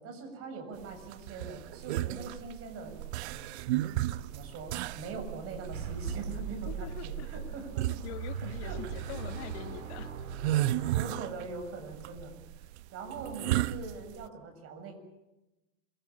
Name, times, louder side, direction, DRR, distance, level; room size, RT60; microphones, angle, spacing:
voice 1, 0.0-3.6 4.3-7.9 8.6-9.2 10.8-12.4 12.9-15.0, right 4 dB, 35° right, 5 dB, 7.3 m, -42 dB
sound 1, 0.8-14.3, right 14 dB, 55° right, 1.0 m, -34 dB
sound 2, 5.7-11.9, right 7 dB, 80° right, 4.0 m, -40 dB
voice 2, 6.7-7.3 7.9-10.2, left 14 dB, 55° left, 10 dB, 1.7 m, -44 dB
27.5 x 23.0 x 7.3 m, 1.0 s
supercardioid pair, 140°, 40 cm